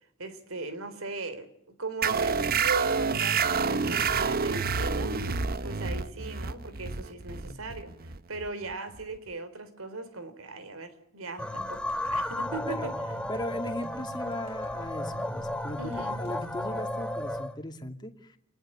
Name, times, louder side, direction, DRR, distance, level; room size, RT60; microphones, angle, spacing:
voice 1, 0.2-1.5 1.8-5.2 5.6-12.9 15.8-16.2, right 3 dB, 85° right, 3.8 m, -38 dB
sound 1, 2.0-9.1, right 5 dB, 45° right, 1.0 m, -28 dB
sound 2, 11.4-17.6, left 1 dB, 5° left, 1.2 m, -33 dB
sound 3, 11.4-16.6, equal, 30° right, 7.6 m, -47 dB
voice 2, 13.3-18.4, left 1 dB, 20° left, 2.4 m, -38 dB
29.0 x 20.5 x 8.6 m
head